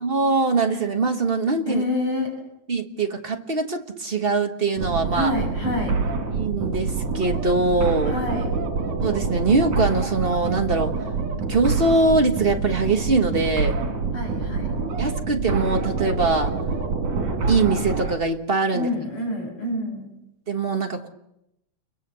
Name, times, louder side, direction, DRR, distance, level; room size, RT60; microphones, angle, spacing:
voice 1, 0.0-1.8 2.7-5.3 6.3-8.2 9.0-10.9 11.5-13.8 15.0-16.5 17.5-18.9 20.5-21.1, right 3 dB, 45° right, 4 dB, 0.7 m, -22 dB
voice 2, 1.7-2.3 5.1-6.0 8.0-8.5 14.1-14.7 18.7-20.1, left 1 dB, 45° left, 2 dB, 7.2 m, -27 dB
sound 1, 4.8-18.2, right 4 dB, 85° right, 4.5 m, -26 dB
30.0 x 23.0 x 6.9 m, 0.86 s
omnidirectional pair, 3.4 m